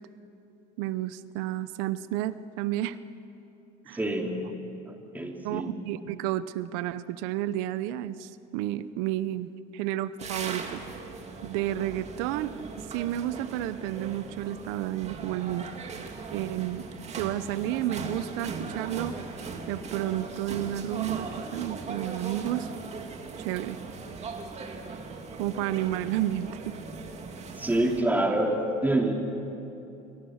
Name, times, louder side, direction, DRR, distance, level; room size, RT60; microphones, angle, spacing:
voice 1, 0.8-3.0 3.9-4.0 5.4-10.8 11.4-12.5 12.9-15.7 16.3-16.8 17.1-19.1 19.7-22.7 23.4-23.8 25.4-26.8, right 13 dB, 85° right, 15 dB, 0.9 m, -31 dB
voice 2, 3.9-4.5 4.9-5.7 27.6-29.1, right 1 dB, 10° right, 1 dB, 3.3 m, -27 dB
sound 1, 10.2-28.0, right 4 dB, 35° right, 2.5 m, -39 dB
27.0 x 23.5 x 6.6 m, 2.9 s
cardioid pair, 115°, 19 cm